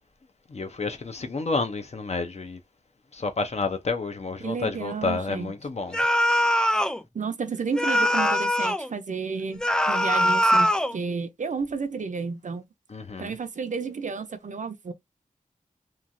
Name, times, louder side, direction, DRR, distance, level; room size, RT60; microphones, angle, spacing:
voice 1, 0.5-2.6 3.1-6.0 6.3-6.4 12.9-13.3, left 3 dB, 50° left, 0.6 m, -30 dB
voice 2, 4.4-5.5 7.1-12.6 13.2-14.9, right 5 dB, 65° right, 0.5 m, -31 dB
sound 1, 5.9-7.0 7.8-8.9 9.6-11.0, equal, 5° left, 0.3 m, -22 dB
3.0 x 2.3 x 2.6 m
wide cardioid pair, 75°, 14 cm